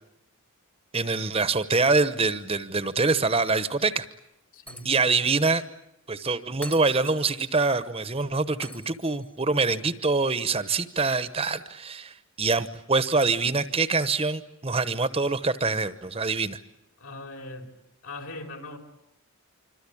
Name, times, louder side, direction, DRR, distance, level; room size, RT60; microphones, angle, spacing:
voice 1, 0.9-4.0 4.8-5.6 6.1-16.6, right 3 dB, 25° right, 13 dB, 1.0 m, -25 dB
voice 2, 4.5-5.0 17.0-17.7 18.0-18.8, left 2 dB, 75° left, 4 dB, 5.3 m, -40 dB
Shatter, 4.7-5.3 5.6-5.7 6.6-7.6 8.6-9.6, equal, 5° left, 1.1 m, -44 dB
26.5 x 25.5 x 8.6 m, 0.81 s
head